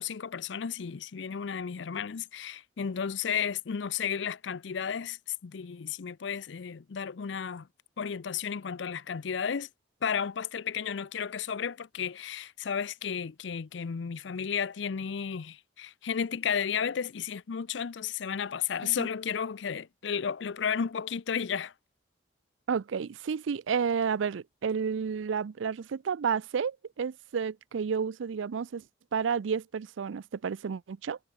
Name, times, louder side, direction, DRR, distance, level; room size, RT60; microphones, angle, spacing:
voice 1, 0.0-7.7 8.0-9.7 10.0-21.7, left 7 dB, 70° left, 0.5 m, -33 dB
voice 2, 22.7-28.8 29.1-31.2, right 6 dB, 85° right, 0.4 m, -31 dB
head